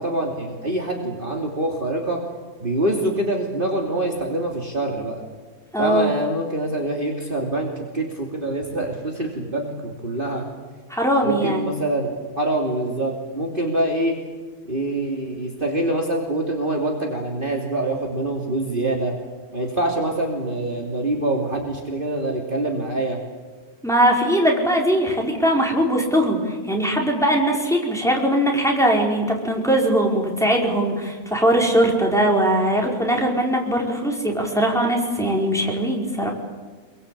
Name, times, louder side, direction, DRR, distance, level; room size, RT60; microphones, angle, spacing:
voice 1, 0.0-2.2 2.6-5.2 5.8-10.4 11.2-14.2 14.7-19.1 19.5-23.2, right 1 dB, 35° right, 0 dB, 3.1 m, -25 dB
voice 2, 5.7-6.1 10.9-11.7 23.8-36.3, right 1 dB, ahead, 0 dB, 4.9 m, -20 dB
27.0 x 23.0 x 8.6 m, 1.4 s
omnidirectional pair, 1.6 m